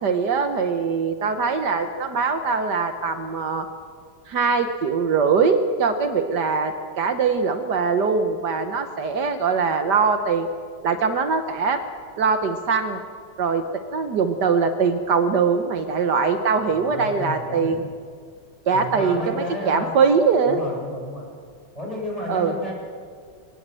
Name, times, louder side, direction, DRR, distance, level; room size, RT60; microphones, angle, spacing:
voice 1, 0.0-3.7 4.3-10.5 10.8-11.8 12.2-13.0 13.4-13.6 13.9-17.8 18.7-20.6 22.3-22.5, right 5 dB, 65° right, 8 dB, 1.6 m, -22 dB
voice 2, 16.6-17.8 18.7-19.9 20.5-21.2 21.7-22.7, left 1 dB, 20° left, -2 dB, 6.0 m, -32 dB
23.5 x 18.0 x 7.6 m, 2.1 s
omnidirectional pair, 2.0 m